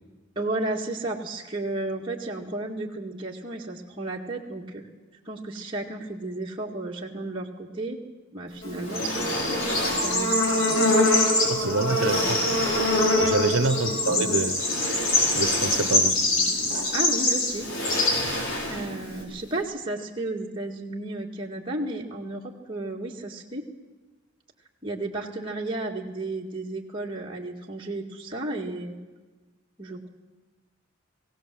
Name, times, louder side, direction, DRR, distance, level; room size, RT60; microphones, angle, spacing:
voice 1, 0.4-4.9 5.3-8.0 8.3-10.4 11.6-12.0 13.4-13.6 16.9-17.7 18.7-23.6 24.8-29.0 29.8-30.1, right 2 dB, 25° right, -2 dB, 2.0 m, -33 dB
Bird / Insect, 8.6-19.2, left 2 dB, 85° left, 6.5 m, -24 dB
sound 1, 8.8-10.3 11.4-11.5 11.8-13.4 14.5-16.2 16.6-16.7 17.5-19.1 19.4-19.5, equal, 55° left, 4.8 m, -31 dB
voice 2, 11.4-12.4 13.2-14.6 15.4-16.2, right 3 dB, 75° right, 12 dB, 0.9 m, -26 dB
19.5 x 17.5 x 7.7 m, 1.3 s
head